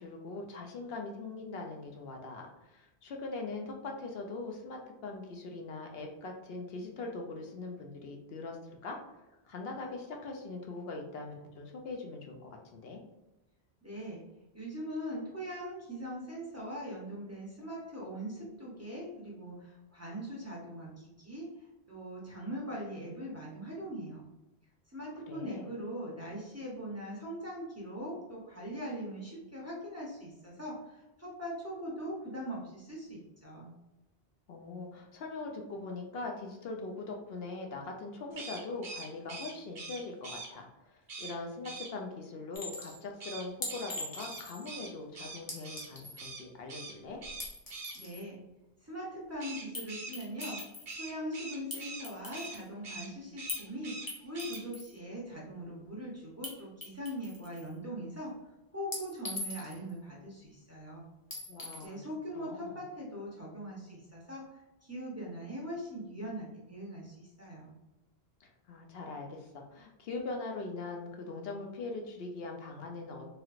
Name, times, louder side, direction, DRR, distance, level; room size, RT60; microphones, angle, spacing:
voice 1, 0.0-9.0 9.4-13.0 25.3-25.7 34.5-47.2 61.5-62.0 62.3-62.8 68.4-73.3, left 3 dB, 70° left, 2 dB, 0.8 m, -41 dB
voice 2, 13.8-14.2 14.5-21.5 21.9-24.2 24.9-33.7 47.9-48.4 48.8-50.6 51.0-58.3 58.7-61.0 61.6-67.7, equal, 20° right, -5 dB, 0.6 m, -41 dB
sound 1, 38.3-40.5 41.1-41.4 41.6-41.9 43.2-45.9 46.2-46.4 46.7-46.9 47.2-48.0 49.4-52.1 52.3-52.6 52.8-53.1 53.4-54.1 54.3-54.6, right 3 dB, 55° right, 0.9 m, -43 dB
Chink clink, 42.5-43.0 43.6-44.7 45.5-46.2 47.2-48.2 49.7-49.9 50.1-51.0 51.7-52.7 53.5-53.7 54.1-54.9 56.4-56.5 56.8-57.7 58.9-59.9 61.3-61.9, left 2 dB, 25° left, 0.6 m, -41 dB
3.1 x 2.8 x 2.4 m, 0.99 s
omnidirectional pair, 1.1 m